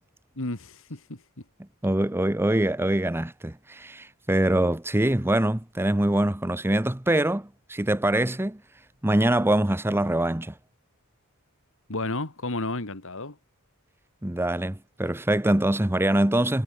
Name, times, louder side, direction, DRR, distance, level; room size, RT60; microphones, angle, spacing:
voice 1, 0.4-1.2 11.9-13.4, left 2 dB, 65° left, 2.7 m, -32 dB
voice 2, 1.8-8.6 9.0-10.5 14.2-16.6, right 1 dB, 10° right, 0.9 m, -24 dB
head